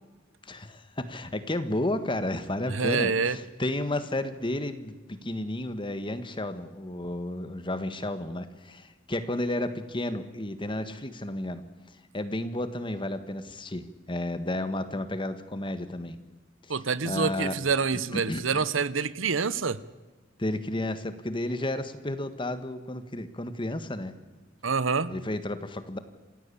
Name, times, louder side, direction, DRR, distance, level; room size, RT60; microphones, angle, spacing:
voice 1, 0.4-11.6 12.1-16.2 16.6-16.7 17.0-17.6 17.9-18.6 20.4-24.1 25.1-26.0, left 1 dB, 25° left, 11 dB, 1.5 m, -32 dB
voice 2, 2.7-3.4 16.7-19.8 24.6-25.1, right 5 dB, 90° right, 17 dB, 1.0 m, -27 dB
27.0 x 16.0 x 8.5 m, 1.3 s
head